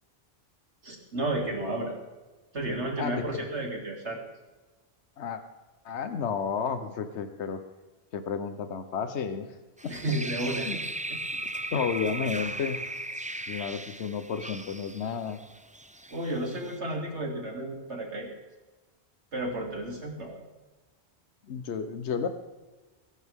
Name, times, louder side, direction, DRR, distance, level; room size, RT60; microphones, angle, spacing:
voice 1, 0.8-1.9 2.5-4.2 9.9-10.8 11.1-11.2 16.1-18.3 19.3-20.4, right 1 dB, 90° right, 0 dB, 3.4 m, -32 dB
voice 2, 3.0-3.5 5.2-5.4 5.8-7.6 8.1-9.5 9.8-9.9 10.7-10.8 11.7-12.8 13.5-15.4 21.5-22.3, left 6 dB, 80° left, 9 dB, 1.2 m, -31 dB
sound 1, 9.8-16.8, right 1 dB, 10° right, 0.3 m, -37 dB
21.5 x 11.5 x 3.6 m, 1.2 s
omnidirectional pair, 1.1 m